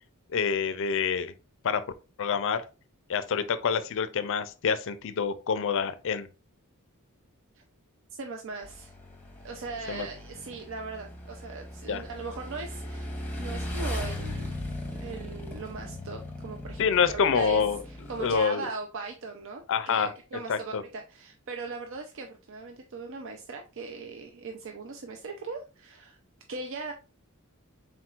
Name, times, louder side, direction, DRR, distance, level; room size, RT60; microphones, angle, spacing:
voice 1, 0.3-1.3 1.6-1.8 2.2-2.6 3.1-6.3 9.9-10.1 11.9-12.0 16.8-17.8 18.2-18.7 19.7-20.1 20.5-20.8, left 6 dB, 60° left, 0.4 m, -26 dB
voice 2, 8.2-8.9 9.4-13.1 13.4-17.6 17.9-26.2 26.5-26.9, right 4 dB, 60° right, 0.5 m, -39 dB
Motorcycle / Engine, 8.6-18.4, left 1 dB, 5° left, 0.8 m, -38 dB
4.4 x 3.8 x 2.4 m
head